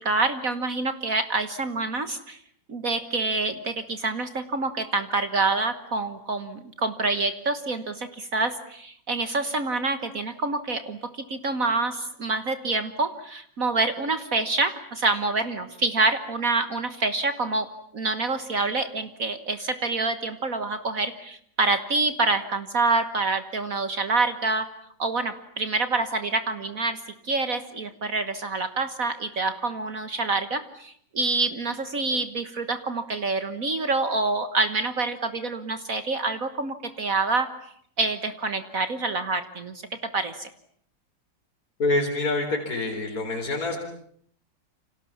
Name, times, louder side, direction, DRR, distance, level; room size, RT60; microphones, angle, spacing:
voice 1, 0.0-2.4 2.7-11.0 11.3-17.7 17.9-24.7 25.0-27.0 27.2-37.5 38.0-39.8 40.1-40.5, right 3 dB, 50° right, 10 dB, 1.7 m, -27 dB
voice 2, 41.8-43.8, left 2 dB, 50° left, 0 dB, 4.5 m, -26 dB
29.5 x 26.5 x 7.3 m, 0.65 s
omnidirectional pair, 2.0 m